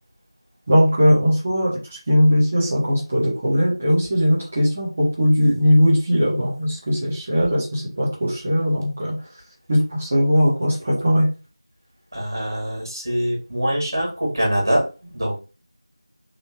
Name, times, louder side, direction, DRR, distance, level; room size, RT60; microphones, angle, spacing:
voice 1, 0.7-1.8 2.1-9.2 9.7-11.3, equal, 5° right, -7 dB, 0.3 m, -19 dB
voice 2, 12.1-15.4, equal, 40° right, -1 dB, 2.3 m, -24 dB
4.2 x 3.6 x 2.6 m, 0.32 s
figure-of-eight pair, 175°, 3 cm